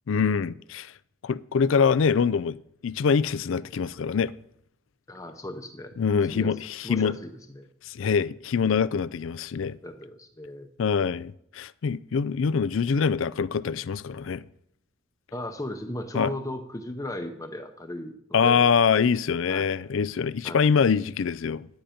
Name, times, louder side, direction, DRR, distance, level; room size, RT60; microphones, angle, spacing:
voice 1, 0.1-0.9 1.2-2.6 2.8-4.3 6.0-7.2 7.9-9.8 10.8-14.4 16.1-16.3 18.3-21.7, left 6 dB, 65° left, 0.4 m, -24 dB
voice 2, 5.1-5.9 6.2-7.7 9.8-10.7 15.3-18.7 19.5-19.7 20.4-20.7, left 1 dB, 15° left, 0.7 m, -36 dB
10.0 x 10.0 x 5.1 m
head